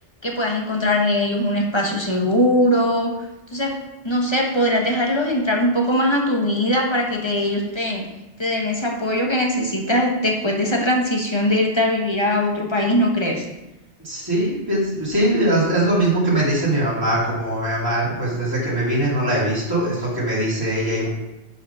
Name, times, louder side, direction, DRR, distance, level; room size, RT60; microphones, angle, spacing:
voice 1, 0.2-3.1 3.5-3.8 4.0-8.0 8.4-13.5, left 1 dB, 25° left, 1 dB, 1.1 m, -21 dB
voice 2, 14.0-21.1, right 1 dB, 20° right, -7 dB, 2.4 m, -21 dB
7.9 x 5.4 x 5.5 m, 0.98 s
omnidirectional pair, 1.1 m